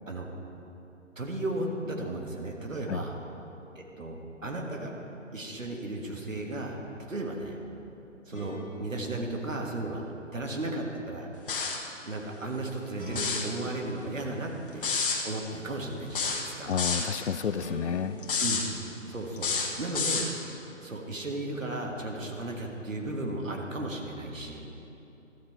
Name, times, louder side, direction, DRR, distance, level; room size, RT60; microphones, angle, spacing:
voice 1, 1.2-3.2 3.8-4.9 5.3-7.6 8.3-10.0 10.3-11.3 12.0-14.8 15.2-16.7 18.4-18.6 19.1-20.2 20.8-24.7, right 2 dB, 85° right, 1 dB, 1.6 m, -35 dB
sound 1, 4.4-5.3 8.3-10.5 12.9-15.1 17.6-19.8, equal, 15° right, 1.2 m, -45 dB
sound 2, 11.5-11.9 13.1-13.5 14.8-15.2 16.1-17.1 18.2-18.7 19.4-20.3, left 5 dB, 45° left, 1.3 m, -29 dB
voice 2, 16.7-18.2, left 7 dB, 60° left, 13 dB, 0.5 m, -30 dB
13.0 x 7.2 x 4.5 m, 2.9 s
figure-of-eight pair, 145°, 38 cm